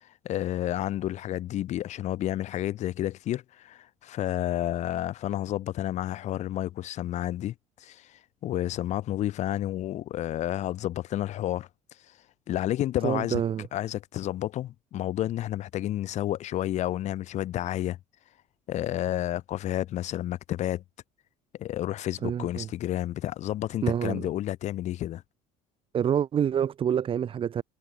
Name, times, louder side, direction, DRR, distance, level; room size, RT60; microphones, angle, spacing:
voice 1, 0.0-7.5 7.8-11.7 12.5-13.4 13.7-18.0 18.7-20.8 21.6-25.2, left 13 dB, 40° left, 0.4 m, -30 dB
voice 2, 13.0-13.7 22.2-22.7 23.8-24.3 25.9-27.6, right 9 dB, 30° right, 0.5 m, -27 dB
hypercardioid pair, 65°, 18 cm